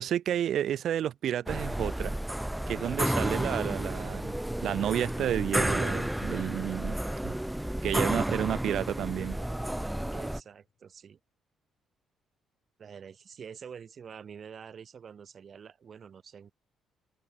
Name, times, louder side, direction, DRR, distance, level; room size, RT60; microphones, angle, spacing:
voice 1, 0.0-2.2 2.7-4.3 4.6-7.0 7.2-7.4 7.8-9.4, right 10 dB, 65° right, 0.4 m, -31 dB
sound 1, 1.5-10.4, right 1 dB, 5° right, 0.7 m, -31 dB
voice 2, 10.1-11.2 12.8-16.5, right 7 dB, 45° right, 3.5 m, -47 dB
sound 2, 10.6-10.9, left 10 dB, 60° left, 5.7 m, -62 dB
cardioid pair, 100°, 0 cm